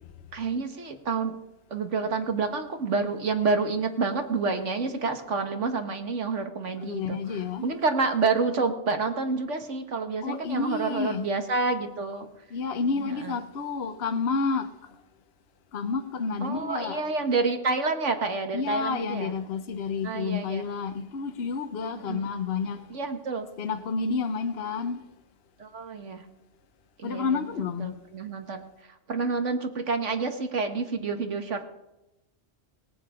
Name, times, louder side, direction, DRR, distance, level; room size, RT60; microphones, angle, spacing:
voice 1, 0.3-1.4 1.7-7.2 7.6-12.3 12.8-13.4 16.4-19.3 20.0-20.7 22.0-22.4 22.9-23.5 25.6-26.2 27.0-27.4 27.8-28.6 29.1-31.6, right 4 dB, 90° right, 1.8 m, -28 dB
voice 2, 6.8-7.7 10.2-11.3 12.5-14.8 15.7-17.1 18.5-22.8 23.6-25.0 27.0-27.9, left 5 dB, 60° left, 1.1 m, -30 dB
21.5 x 7.7 x 5.0 m
omnidirectional pair, 1.2 m